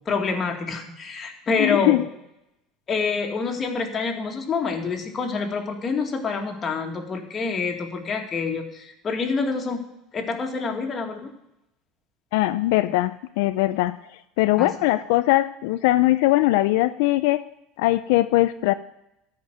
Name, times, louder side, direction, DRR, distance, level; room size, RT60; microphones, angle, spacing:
voice 1, 0.1-2.0 2.9-9.8 10.1-11.3 14.6-14.7, left 4 dB, 25° left, 2 dB, 2.1 m, -27 dB
voice 2, 1.6-2.0 12.3-14.0 14.4-17.4 17.8-18.7, left 17 dB, 75° left, 11 dB, 0.4 m, -20 dB
14.0 x 5.3 x 9.2 m, 0.84 s
supercardioid pair, 140°, 0 cm